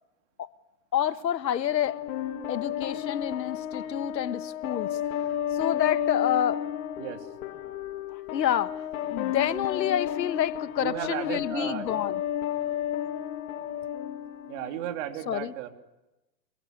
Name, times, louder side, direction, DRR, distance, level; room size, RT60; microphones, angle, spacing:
voice 1, 0.9-2.0 2.5-5.2 5.5-6.6 8.1-8.8 9.1-12.2 15.3-15.5, left 10 dB, 85° left, 1.6 m, -28 dB
sound 1, 1.9-14.9, left 10 dB, 55° left, 2.9 m, -32 dB
voice 2, 7.0-7.3 10.8-11.9 14.5-15.7, right 11 dB, 45° right, 3.6 m, -34 dB
28.5 x 21.0 x 9.6 m
hypercardioid pair, 145°, 50 cm